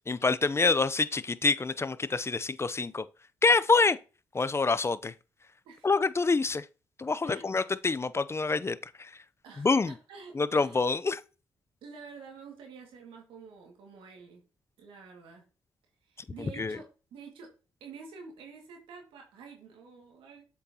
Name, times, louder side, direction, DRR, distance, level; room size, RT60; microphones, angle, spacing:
voice 1, 0.1-3.0 3.4-4.0 4.3-5.1 5.8-6.7 7.0-9.1 9.6-9.9 10.3-11.2 16.4-16.8, left 4 dB, 30° left, 0.6 m, -26 dB
voice 2, 9.4-10.8 11.8-14.4 14.8-15.4 16.1-17.5 17.8-20.4, right 5 dB, 80° right, 2.1 m, -48 dB
7.7 x 6.1 x 2.9 m
supercardioid pair, 45°, 9 cm